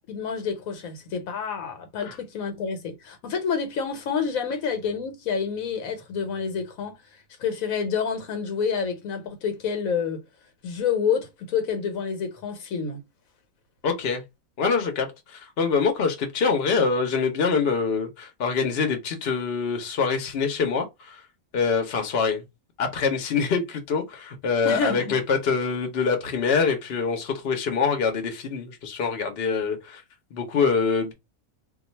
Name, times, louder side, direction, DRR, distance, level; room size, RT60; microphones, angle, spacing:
voice 1, 0.1-7.0 7.4-10.2 10.6-13.0 24.6-25.2, left 6 dB, 80° left, 1.3 m, -28 dB
voice 2, 13.8-14.2 14.6-21.2 21.5-22.4 22.8-30.0 30.3-31.1, left 5 dB, 50° left, 1.0 m, -25 dB
2.6 x 2.4 x 4.0 m
omnidirectional pair, 1.4 m